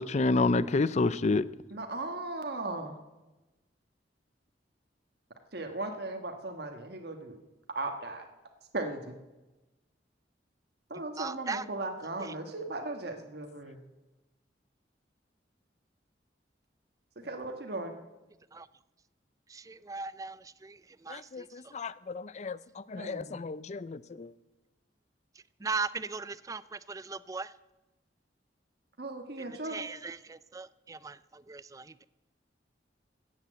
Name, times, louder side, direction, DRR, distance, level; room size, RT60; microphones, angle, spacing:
voice 1, 0.0-1.5 21.1-22.6 22.9-24.3, left 3 dB, 40° left, 0.4 m, -30 dB
voice 2, 1.7-3.0 5.5-7.4 7.7-8.3 8.7-9.1 10.9-13.8 17.2-17.9 22.9-23.4 29.0-29.9, right 2 dB, 65° right, 1.4 m, -37 dB
voice 3, 11.2-11.7 12.2-12.3 18.5-18.7 19.5-21.8 25.6-27.5 29.4-32.1, right 4 dB, 20° right, 0.4 m, -39 dB
14.0 x 8.7 x 7.8 m
head